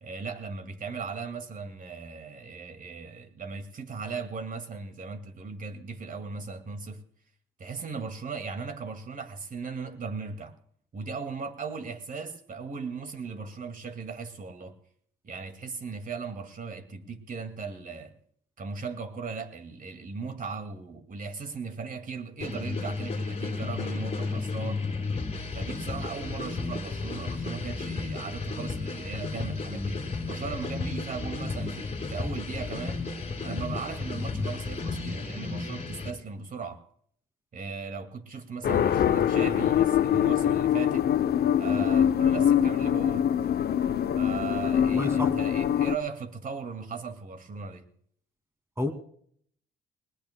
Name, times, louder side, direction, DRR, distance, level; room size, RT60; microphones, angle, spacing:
voice 1, 0.0-7.0 7.6-10.5 10.9-14.8 15.2-18.2 18.6-24.8 25.5-33.1 33.4-36.8 37.5-41.1 41.6-43.3 44.1-47.8, right 5 dB, 45° right, 8 dB, 2.1 m, -37 dB
sound 1, 22.4-36.1, left 4 dB, 30° left, 2.6 m, -33 dB
sound 2, 38.6-46.0, left 9 dB, 55° left, 0.6 m, -24 dB
voice 2, 44.8-45.5 48.8-48.9, left 1 dB, 15° right, 6 dB, 2.4 m, -31 dB
20.5 x 20.0 x 2.2 m, 0.63 s
cardioid pair, 90°, 20 cm